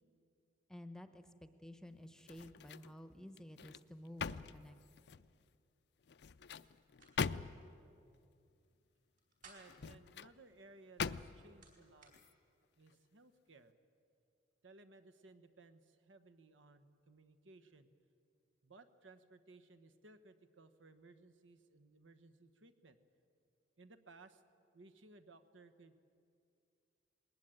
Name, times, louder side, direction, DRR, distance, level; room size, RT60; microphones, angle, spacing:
voice 1, 0.7-4.8, left 1 dB, 5° left, 9 dB, 0.9 m, -53 dB
sound 1, 2.2-3.0 3.4-5.3 6.1-7.8 9.6-10.3 11.0-11.6 12.1-12.3, left 5 dB, 60° left, 0.5 m, -42 dB
sound 2, 6.6-7.1 7.5-7.6 9.0-9.9 11.0-12.2, right 3 dB, 45° right, 4.5 m, -62 dB
voice 2, 9.4-12.1 12.8-13.7 14.6-17.9 18.6-23.0 23.8-24.4 24.7-25.9, right 3 dB, 85° right, 9 dB, 1.3 m, -61 dB
20.5 x 19.0 x 9.0 m, 2.5 s
head